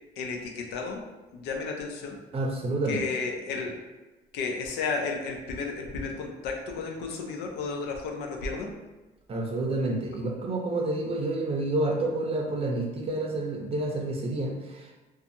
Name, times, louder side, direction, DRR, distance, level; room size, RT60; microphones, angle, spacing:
voice 1, 0.2-1.0 1.3-2.2 2.9-3.7 4.3-8.7, left 4 dB, 85° left, 1 dB, 0.5 m, -33 dB
voice 2, 2.3-3.0 9.3-14.9, right 2 dB, 35° right, 0 dB, 0.6 m, -29 dB
2.6 x 2.3 x 2.6 m, 1.1 s
cardioid pair, 110°, 17 cm